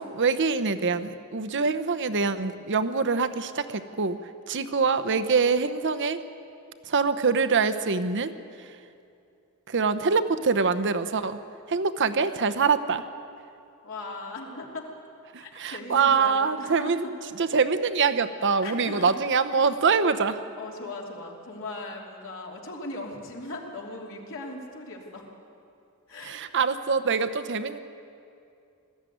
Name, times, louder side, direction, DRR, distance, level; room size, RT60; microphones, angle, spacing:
voice 1, 0.0-6.2 6.8-8.3 8.6-8.8 9.7-11.4 11.7-13.0 15.3-17.1 17.4-20.4 26.2-27.8, right 5 dB, 55° right, 11 dB, 0.9 m, -24 dB
voice 2, 13.8-14.9 15.4-17.0 18.6-19.1 20.6-25.3 26.1-26.4, left 2 dB, 60° left, -1 dB, 3.1 m, -38 dB
20.0 x 14.0 x 9.3 m, 2.5 s
head